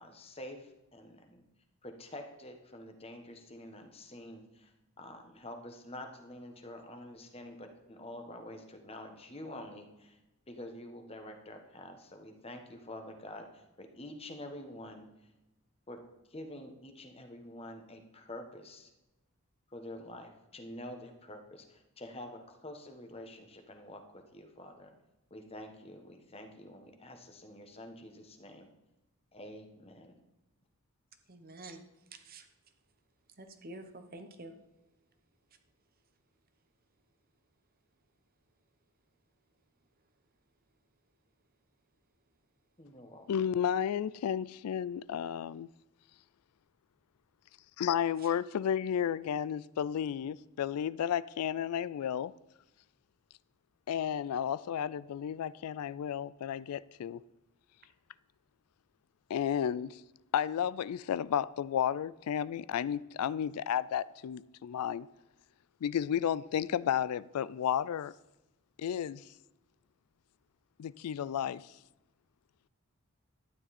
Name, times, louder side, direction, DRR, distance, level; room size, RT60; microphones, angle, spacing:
voice 1, 0.0-1.4 1.8-4.7 5.0-10.2 10.5-15.1 15.9-16.0 16.3-18.9 19.7-24.9 25.3-28.7 29.3-30.2 42.8-43.3, left 1 dB, 25° left, 5 dB, 1.2 m, -47 dB
voice 2, 31.3-31.8 32.3-32.4 33.4-34.5, right 2 dB, 40° right, 8 dB, 0.9 m, -48 dB
voice 3, 43.3-45.7 47.8-52.3 53.9-57.2 59.3-60.0 60.3-65.1 65.8-68.1 68.8-69.2 70.8-71.7, left 9 dB, 90° left, 19 dB, 0.3 m, -32 dB
12.0 x 9.8 x 4.2 m, 0.99 s
head